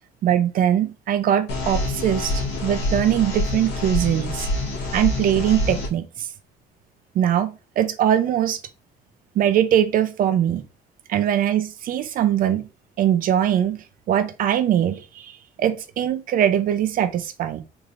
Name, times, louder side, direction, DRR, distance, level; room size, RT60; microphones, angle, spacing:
voice 1, 0.2-2.3 2.6-4.5 4.9-6.0 7.2-8.6 9.4-10.6 11.1-12.6 13.0-13.8 14.1-15.3 15.6-17.6, right 10 dB, 55° right, 0.5 m, -21 dB
sound 1, 1.5-5.9, left 1 dB, 90° left, 1.3 m, -26 dB
3.5 x 3.2 x 2.5 m
cardioid pair, 110°, 17 cm